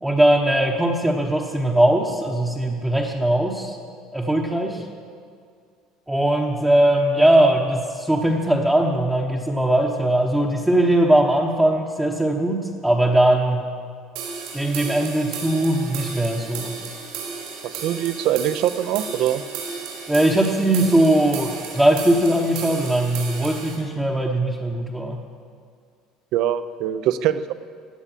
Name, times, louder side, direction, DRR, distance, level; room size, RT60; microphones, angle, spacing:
voice 1, 0.0-3.8 4.1-4.8 6.1-13.7 14.5-16.8 20.1-25.2, right 1 dB, 5° right, -2 dB, 1.0 m, -20 dB
sound 1, 14.2-23.8, right 5 dB, 80° right, 4.9 m, -34 dB
voice 2, 17.6-19.4 26.3-27.5, right 11 dB, 55° right, 13 dB, 0.7 m, -23 dB
16.5 x 9.8 x 7.5 m, 2.2 s
cardioid pair, 155°, 0 cm